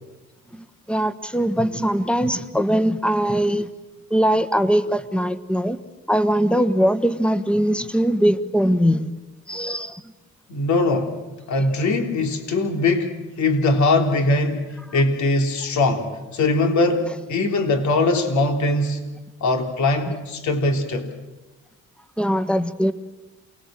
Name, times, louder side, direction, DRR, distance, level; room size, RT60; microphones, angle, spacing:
voice 1, 0.5-3.7 4.1-5.8 6.1-9.1 9.5-10.0 22.2-22.9, equal, 5° left, 12 dB, 1.5 m, -21 dB
voice 2, 10.5-11.2 11.5-19.0 19.4-21.1, left 2 dB, 70° left, 4 dB, 3.4 m, -21 dB
28.0 x 20.5 x 7.7 m, 1.1 s
cardioid pair, 90°, 30 cm